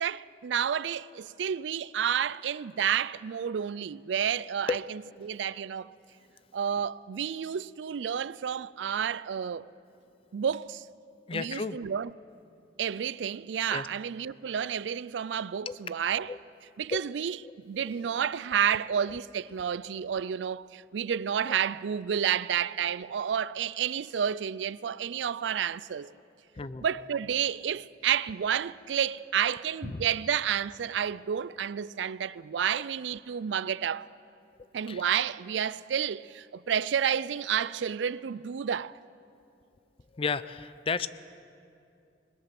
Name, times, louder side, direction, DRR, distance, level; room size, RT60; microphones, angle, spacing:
voice 1, 0.0-4.8 5.2-5.9 6.5-9.6 10.3-10.8 11.3-12.1 12.8-16.3 16.8-17.4 17.6-26.1 26.8-34.1 34.7-39.0, right 8 dB, 85° right, 0.4 m, -30 dB
voice 2, 11.3-11.8 13.7-13.9 15.7-15.8 16.3-16.4 16.9-17.0 17.4-17.5 21.5-21.6 26.6-26.9 29.8-30.1 34.9-35.0 40.1-41.1, left 4 dB, 30° left, 0.5 m, -32 dB
21.0 x 20.5 x 6.0 m
head